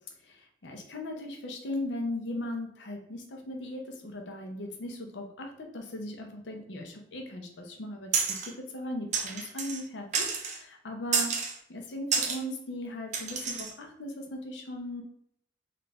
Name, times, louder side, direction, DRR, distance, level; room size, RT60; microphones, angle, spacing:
voice 1, 0.2-8.1 8.5-11.3 11.7-15.0, left 1 dB, 75° left, 3 dB, 0.7 m, -38 dB
sound 1, 8.1-8.5 9.1-9.8 10.1-10.6 11.1-11.6 12.1-12.4 13.1-13.7, right 5 dB, 40° right, 0.5 m, -29 dB
3.2 x 2.5 x 3.3 m, 0.71 s
head